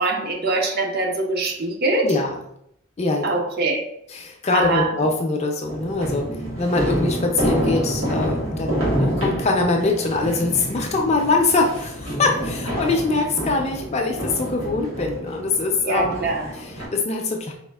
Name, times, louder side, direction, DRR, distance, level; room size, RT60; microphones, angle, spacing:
voice 1, 0.0-2.1 3.2-3.8 4.5-4.9 15.8-16.5, right 3 dB, 45° right, 2 dB, 0.5 m, -23 dB
voice 2, 2.0-2.4 3.0-3.3 4.1-6.3 6.6-17.5, left 3 dB, 30° left, 2 dB, 0.4 m, -23 dB
sound 1, 5.7-16.9, equal, 90° right, 1.4 m, -27 dB
4.2 x 2.4 x 2.3 m, 0.74 s
head